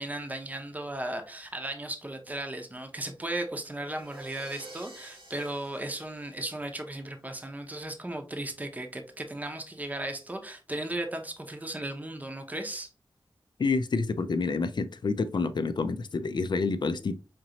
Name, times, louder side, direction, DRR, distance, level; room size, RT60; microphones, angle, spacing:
voice 1, 0.0-12.9, right 1 dB, 20° right, 0.8 m, -36 dB
sound 1, 3.7-7.0, right 1 dB, 80° right, 1.6 m, -50 dB
voice 2, 13.6-17.1, left 4 dB, 60° left, 0.5 m, -28 dB
5.1 x 2.9 x 2.8 m
wide cardioid pair, 95°, 9 cm